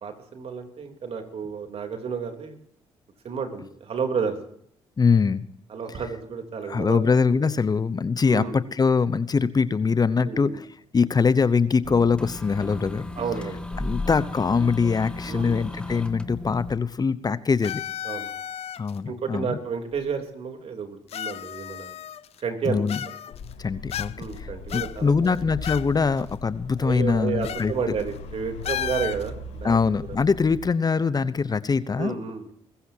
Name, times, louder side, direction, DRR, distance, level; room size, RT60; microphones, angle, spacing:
voice 1, 0.0-2.6 3.2-4.4 5.7-7.0 7.3-7.5 8.3-8.6 10.2-10.6 13.2-13.6 15.3-15.6 18.0-18.3 19.1-22.0 22.4-23.1 24.2-25.4 26.8-29.8 30.1-30.2 32.0-32.5, right 6 dB, 60° right, 4 dB, 3.4 m, -31 dB
voice 2, 5.0-5.4 6.7-10.7 10.9-13.0 13.8-17.8 18.8-19.5 22.6-23.0 23.6-27.7 29.6-32.1, left 5 dB, 35° left, 16 dB, 0.9 m, -23 dB
sound 1, 11.8-16.7, left 2 dB, 10° left, 1.9 m, -34 dB
sound 2, 17.6-19.0 19.9-20.0 21.1-22.4 22.9-23.5 23.9-24.4 24.7-25.9 26.2-26.3 27.4-27.7 28.0-28.2 28.6-29.3, left 11 dB, 60° left, 0.6 m, -33 dB
sound 3, 23.3-30.6, left 3 dB, 80° left, 6.1 m, -39 dB
22.0 x 14.5 x 2.9 m, 0.65 s
supercardioid pair, 65°, 12 cm